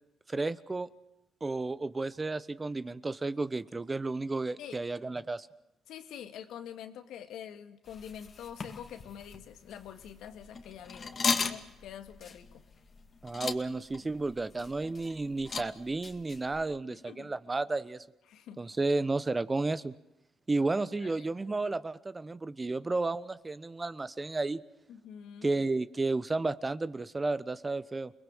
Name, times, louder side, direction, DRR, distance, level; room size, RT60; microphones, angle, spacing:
voice 1, 0.3-0.9 1.4-5.5 13.2-18.0 18.6-19.9 20.5-24.6 25.4-28.1, right 3 dB, 25° right, 15 dB, 1.0 m, -32 dB
voice 2, 5.9-12.6 16.9-17.3 18.3-18.7 21.0-21.3 24.9-25.6, left 9 dB, 85° left, 8 dB, 2.0 m, -46 dB
sound 1, 7.9-16.6, left 5 dB, 40° left, 2.2 m, -38 dB
29.0 x 20.5 x 6.3 m, 0.88 s
cardioid pair, 90°, 0 cm